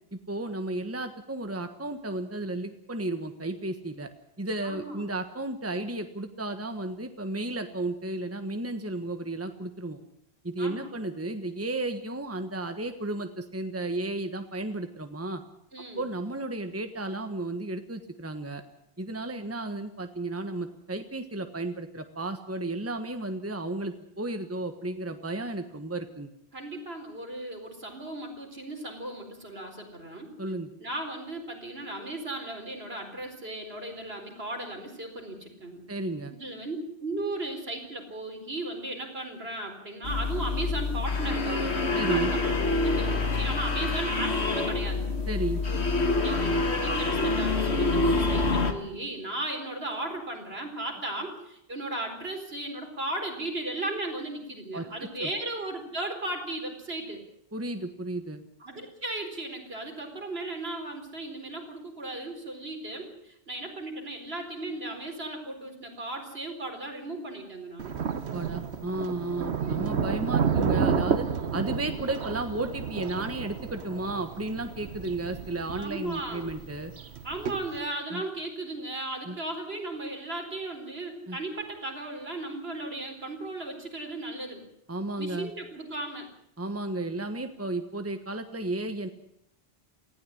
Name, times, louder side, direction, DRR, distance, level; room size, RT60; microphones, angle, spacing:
voice 1, 0.1-4.1 4.4-10.0 10.4-15.4 16.0-18.6 19.0-26.3 30.4-30.7 35.9-36.3 41.9-42.3 45.3-45.6 54.7-55.3 57.5-58.4 68.3-76.9 78.1-78.2 79.3-79.4 81.3-81.4 84.9-85.5 86.6-89.1, right 2 dB, 15° right, 8 dB, 1.4 m, -33 dB
voice 2, 4.6-5.1 10.6-10.9 15.7-16.0 26.5-30.3 30.8-35.8 36.3-42.5 42.8-45.0 45.6-57.2 58.6-67.9 75.8-76.5 77.2-84.6 85.2-86.3, right 2 dB, 70° right, 3 dB, 4.6 m, -36 dB
sound 1, 40.0-48.7, left 3 dB, 85° left, 2.2 m, -26 dB
Thunder, 67.8-77.8, right 6 dB, 85° right, 1.3 m, -31 dB
19.0 x 15.5 x 10.0 m, 0.76 s
omnidirectional pair, 1.1 m